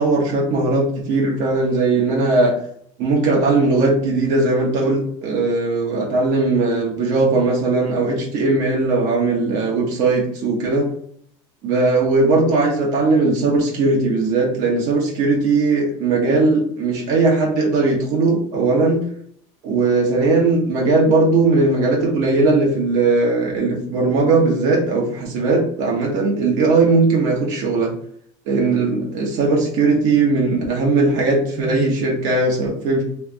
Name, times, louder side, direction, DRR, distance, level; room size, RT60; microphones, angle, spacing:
voice 1, 0.0-2.5 3.0-10.9 11.6-19.0 19.6-27.9 28.5-33.0, right 3 dB, 70° right, -1 dB, 1.1 m, -18 dB
3.3 x 2.5 x 3.2 m, 0.63 s
cardioid pair, 130°, 14 cm